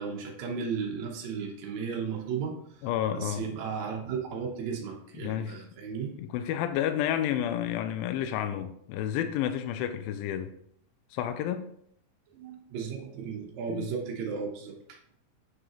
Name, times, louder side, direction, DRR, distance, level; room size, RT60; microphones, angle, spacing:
voice 1, 0.0-6.1 12.3-15.0, right 6 dB, 65° right, 2.0 m, -35 dB
voice 2, 2.8-3.4 5.2-5.6 6.2-10.5 11.1-11.7 13.7-13.9, left 10 dB, 85° left, 2.3 m, -30 dB
8.4 x 5.3 x 3.0 m
omnidirectional pair, 4.1 m